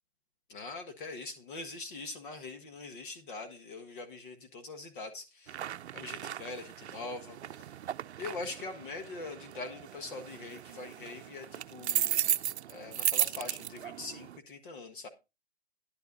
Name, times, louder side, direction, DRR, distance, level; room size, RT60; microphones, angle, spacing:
voice 1, 0.5-5.6 5.9-7.7 8.2-12.4 12.7-15.1, left 3 dB, 50° left, 7 dB, 1.5 m, -43 dB
sound 1, 5.5-14.4, right 11 dB, 85° right, 0.6 m, -36 dB
10.5 x 8.0 x 4.0 m, 0.26 s
hypercardioid pair, 155°, 32 cm